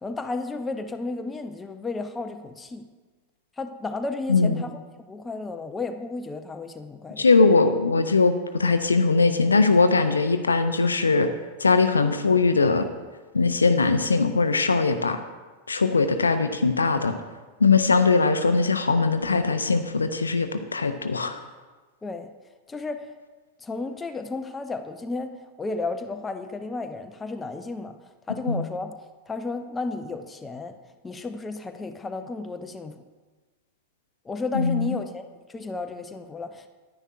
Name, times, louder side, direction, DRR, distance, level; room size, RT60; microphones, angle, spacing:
voice 1, 0.0-2.9 3.6-4.8 5.1-7.3 22.0-22.3 22.7-23.0 23.6-25.3 25.6-28.9 29.3-30.7 31.0-32.9 34.2-35.2 35.5-36.7, left 3 dB, 15° left, 7 dB, 0.5 m, -33 dB
voice 2, 7.2-11.3 11.6-12.9 13.3-15.2 15.7-17.1 17.6-21.4 28.5-28.7 34.5-35.0, left 4 dB, 75° left, 9 dB, 0.5 m, -21 dB
9.9 x 9.8 x 2.5 m, 1.3 s
figure-of-eight pair, 90°, 0 cm